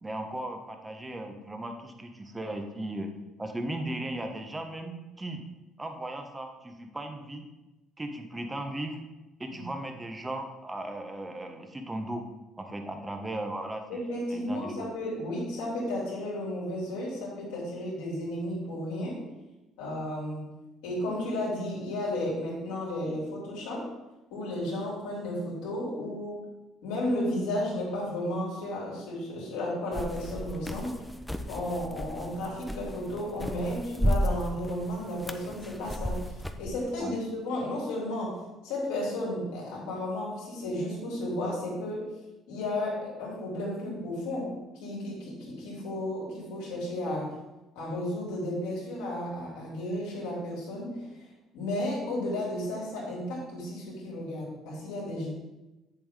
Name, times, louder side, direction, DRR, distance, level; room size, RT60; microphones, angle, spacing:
voice 1, 0.0-3.1 3.4-5.4 5.8-7.4 8.0-9.0 9.4-12.2 12.6-14.0 14.3-14.9 37.0-37.2, right 1 dB, 20° right, 4 dB, 1.2 m, -37 dB
voice 2, 13.9-19.2 19.8-20.5 20.8-23.9 24.3-26.5 26.8-31.0 31.5-42.1 42.5-47.3 47.7-51.1 51.5-55.3, left 1 dB, 85° left, -4 dB, 3.0 m, -33 dB
sound 1, 29.9-36.7, equal, 5° left, 0.6 m, -33 dB
7.9 x 7.0 x 3.6 m, 1.0 s
supercardioid pair, 70°, 0 cm